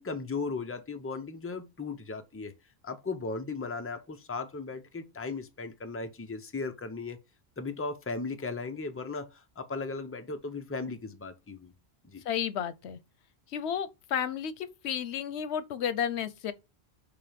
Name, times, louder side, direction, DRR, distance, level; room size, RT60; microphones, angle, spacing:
voice 1, 0.0-2.5 2.8-7.2 7.6-11.7 12.0-12.2, left 4 dB, 15° left, 0.7 m, -36 dB
voice 2, 12.3-13.0 13.5-16.5, left 8 dB, 85° left, 0.9 m, -32 dB
6.8 x 3.2 x 5.1 m
omnidirectional pair, 1.1 m